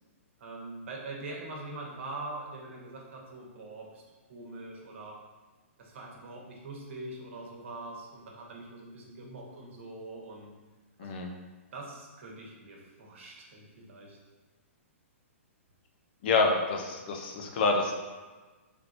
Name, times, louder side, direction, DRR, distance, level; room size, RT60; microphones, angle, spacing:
voice 1, 0.4-4.0 4.3-5.2 5.8-10.5 11.0-11.1 11.7-14.2, right 2 dB, 60° right, -2 dB, 1.1 m, -43 dB
voice 2, 11.0-11.3 16.2-18.0, left 3 dB, 45° left, 2 dB, 0.6 m, -27 dB
4.5 x 3.4 x 2.6 m, 1.3 s
hypercardioid pair, 150°, 7 cm